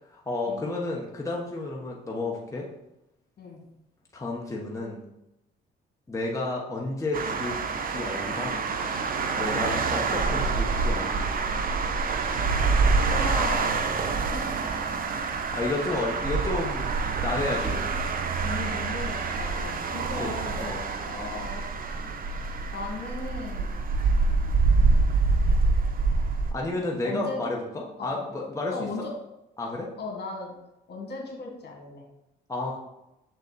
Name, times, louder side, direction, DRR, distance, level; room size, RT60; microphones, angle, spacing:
voice 1, 0.0-2.7 4.1-5.0 6.1-7.6 7.9-8.6 9.4-11.2 15.1-16.9 17.2-17.9 20.1-20.8 26.5-28.7 29.6-29.9 32.5-32.8, left 2 dB, 15° left, -2 dB, 1.2 m, -31 dB
sound 1, 7.1-26.5, right 4 dB, 45° right, 0.7 m, -26 dB
voice 2, 13.0-14.1 14.3-14.4 18.4-21.7 22.7-23.7 24.2-25.3 27.0-27.4 28.0-28.3 28.7-29.1 30.0-30.5 30.9-32.0, left 3 dB, 55° left, 1 dB, 1.8 m, -37 dB
6.9 x 4.0 x 4.1 m, 0.89 s
cardioid pair, 90°, 20 cm